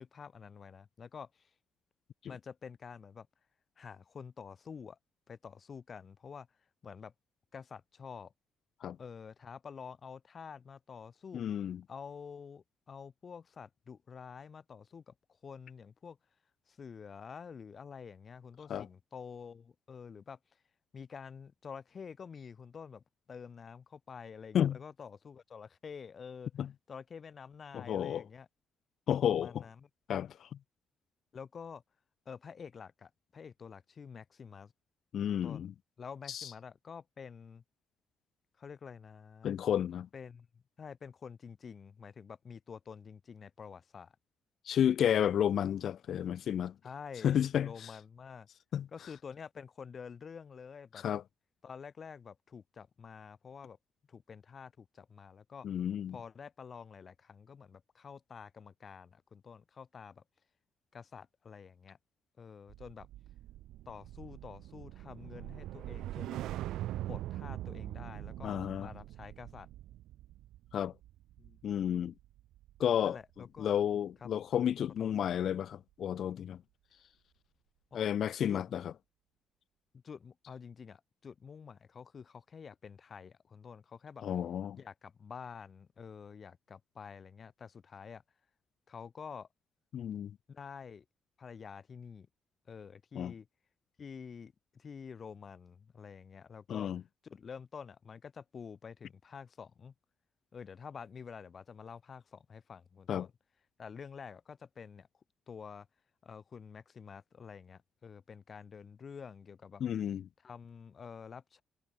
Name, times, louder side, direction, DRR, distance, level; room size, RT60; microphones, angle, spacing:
voice 1, 0.0-1.5 2.3-3.3 3.8-5.0 5.3-6.5 6.8-7.1 7.5-8.3 9.0-11.4 11.9-15.1 15.4-16.2 16.7-20.4 20.9-26.5 26.9-28.5 29.3-29.9 31.3-31.8 32.3-34.7 35.3-35.7 36.0-37.6 38.6-39.6 40.1-40.5 40.8-44.1 46.8-48.5 48.9-51.0 51.6-53.8 54.1-55.7 56.1-60.2 60.9-62.0 62.4-63.1 63.9-66.4 67.1-69.7 71.4-71.8 73.0-73.7 74.2-74.3 75.0-75.1 77.9-78.1 78.5-78.6 79.9-84.2 84.7-88.2 88.9-89.5 90.5-91.0 91.4-92.3 92.7-93.5 94.0-96.9 97.2-99.9 100.5-103.3 103.8-105.1 105.5-105.9 106.2-109.8 110.4-111.6, left 6 dB, 45° left, 3.8 m, -48 dB
voice 2, 11.3-11.8 18.7-18.9 24.5-24.8 26.6-26.7 27.7-28.2 29.1-29.5 30.1-30.5 35.1-35.7 36.3-36.5 39.4-40.1 44.7-46.7 47.2-47.9 48.7-48.9 51.0-51.2 55.6-56.2 68.4-68.9 70.7-70.9 71.6-72.1 72.8-73.2 73.6-76.6 77.9-78.9 84.2-84.8 89.9-90.3 93.2-93.3 96.7-97.0 103.1-103.3 109.8-110.2, left 9 dB, 65° left, 0.3 m, -31 dB
sound 1, 62.7-73.1 73.4-73.7, right 14 dB, 85° right, 2.1 m, -43 dB
cardioid pair, 90°, 0 cm